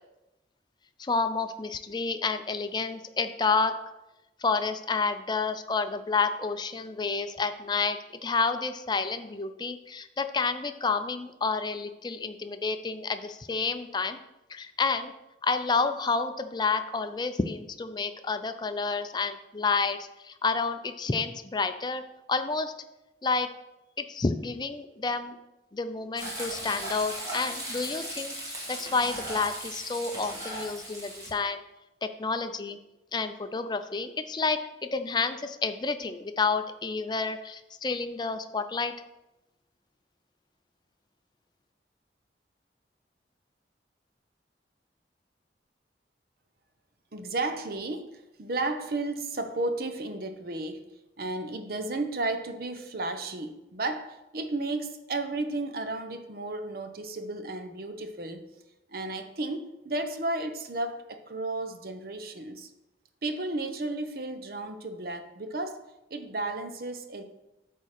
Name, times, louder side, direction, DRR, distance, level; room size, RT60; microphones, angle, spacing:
voice 1, 1.0-3.7 4.4-14.2 14.5-15.1 15.4-22.0 22.3-22.7 23.2-23.5 24.0-25.4 25.7-31.6 32.0-32.8 33.1-34.6 34.9-38.9, left 4 dB, 25° left, 9 dB, 0.4 m, -29 dB
Frying (food), 26.2-31.3, right 1 dB, 20° right, 1.7 m, -37 dB
voice 2, 47.1-50.9 51.2-58.4 58.9-62.7 63.2-65.8 66.1-67.2, right 2 dB, 55° right, 8 dB, 0.8 m, -33 dB
8.5 x 3.7 x 6.5 m, 0.95 s
head